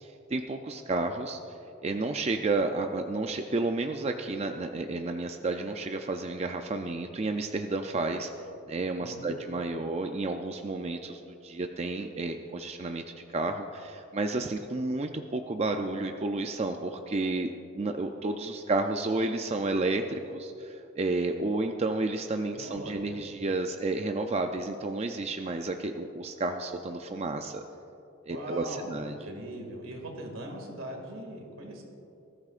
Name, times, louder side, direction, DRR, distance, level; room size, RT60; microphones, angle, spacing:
voice 1, 0.0-1.4 1.8-8.3 8.7-13.0 13.3-17.5 17.7-27.6 28.3-29.2, right 2 dB, 30° right, 5 dB, 0.4 m, -31 dB
voice 2, 9.0-9.3 22.5-23.2 28.3-31.8, right 1 dB, 85° right, 2 dB, 2.2 m, -40 dB
19.5 x 13.0 x 2.5 m, 2.7 s
head